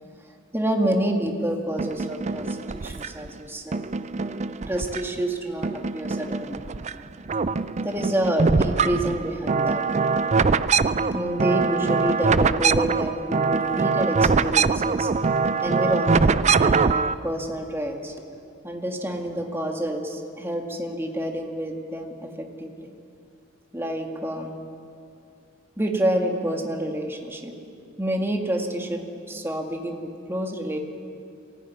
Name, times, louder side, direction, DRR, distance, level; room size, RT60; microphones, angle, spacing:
voice 1, 0.5-3.8 4.7-6.6 7.8-9.8 11.1-15.1 15.6-18.3 18.6-22.9 23.7-24.5 25.8-27.5 28.0-30.8, right 1 dB, 15° right, 2 dB, 2.1 m, -28 dB
sound 1, 1.8-3.3 3.7-5.3 5.6-6.9 7.2-17.1, right 4 dB, 35° right, 0.4 m, -23 dB
23.0 x 16.0 x 9.5 m, 2.5 s
head